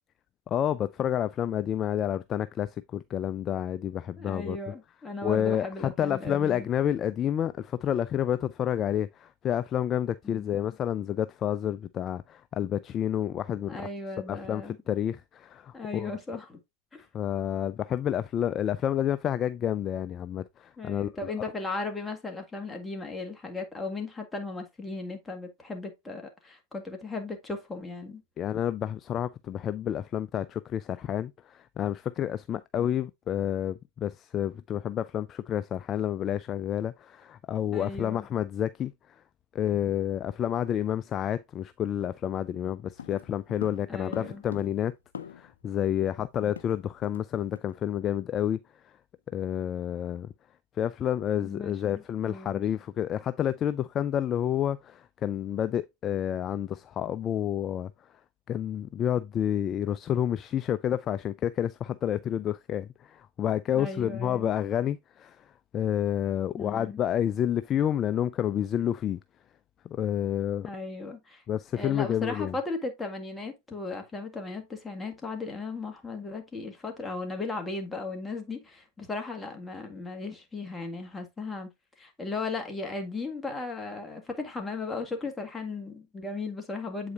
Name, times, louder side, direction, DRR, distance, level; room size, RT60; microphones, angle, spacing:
voice 1, 0.5-4.6 5.2-13.9 14.3-16.1 17.1-21.3 28.4-39.2 39.5-44.9 45.3-48.9 49.3-50.3 50.8-57.9 58.5-69.2 69.9-70.7 71.5-72.6, left 10 dB, 35° left, 0.4 m, -29 dB
voice 2, 4.2-6.7 10.2-10.5 13.7-14.8 15.7-16.6 16.9-17.0 20.8-28.2 37.7-38.3 43.9-44.4 51.4-52.6 63.7-64.5 66.6-67.0 70.6-71.4 71.7-81.7 82.0-87.1, left 3 dB, 15° left, 1.8 m, -36 dB
sound 1, 43.0-45.6 45.9-46.0 46.3-47.3 47.5-47.8 48.1-48.4, left 8 dB, 90° left, 0.7 m, -43 dB
8.1 x 4.9 x 2.5 m
hypercardioid pair, 105°, 0 cm